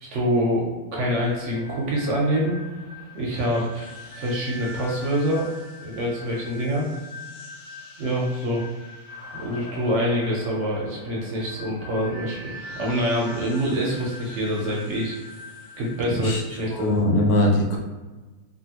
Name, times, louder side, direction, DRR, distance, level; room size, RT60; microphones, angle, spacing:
voice 1, 0.0-2.6 3.1-3.9 4.2-5.5 5.8-6.9 8.0-8.6 9.3-15.2 15.8-17.0, equal, 65° right, -3 dB, 0.8 m, -25 dB
sound 1, 1.0-17.0, left 2 dB, 45° left, 0.8 m, -42 dB
voice 2, 16.1-16.4 16.7-17.8, left 1 dB, 80° left, 0 dB, 1.2 m, -21 dB
2.7 x 2.6 x 2.8 m, 1.2 s
omnidirectional pair, 1.6 m